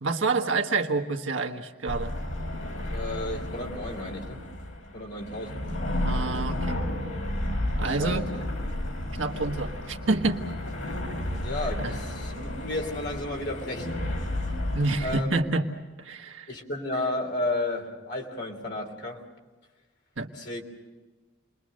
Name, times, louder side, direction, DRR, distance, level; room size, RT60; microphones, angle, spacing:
voice 1, 0.0-2.1 6.0-6.8 7.8-8.3 9.2-10.4 11.8-11.9 14.7-15.7 16.0-16.5 20.2-20.3, right 3 dB, 75° right, 3 dB, 1.6 m, -28 dB
sound 1, 1.8-15.2, left 1 dB, 80° left, 3.8 m, -32 dB
voice 2, 2.9-4.4 4.9-5.7 7.8-8.4 11.4-14.1 15.0-15.4 16.5-19.2 20.3-20.6, left 1 dB, 55° left, 2 dB, 3.2 m, -33 dB
29.0 x 22.0 x 6.5 m, 1.3 s
head